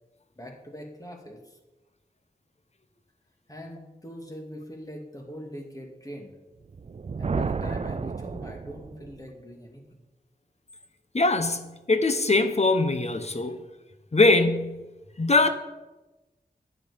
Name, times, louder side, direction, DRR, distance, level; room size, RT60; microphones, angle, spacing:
voice 1, 0.3-1.6 3.5-6.4 7.2-10.0, equal, 20° left, 1 dB, 2.4 m, -42 dB
Thunder, 6.6-9.3, right 5 dB, 45° right, 0.4 m, -32 dB
voice 2, 11.1-13.6 14.1-14.9 15.2-15.5, left 3 dB, 45° left, 9 dB, 1.0 m, -22 dB
12.0 x 9.2 x 5.2 m, 1.1 s
wide cardioid pair, 70°, 16 cm